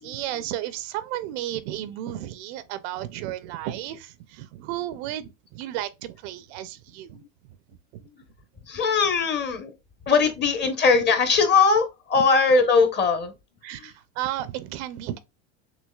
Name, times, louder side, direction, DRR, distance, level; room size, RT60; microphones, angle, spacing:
voice 1, 0.0-7.2 12.2-12.3 13.6-15.2, right 13 dB, 55° right, 0.6 m, -33 dB
voice 2, 8.7-9.7 10.1-13.3, left 4 dB, 30° left, 1.0 m, -20 dB
6.3 x 2.9 x 2.3 m
supercardioid pair, 130°, 38 cm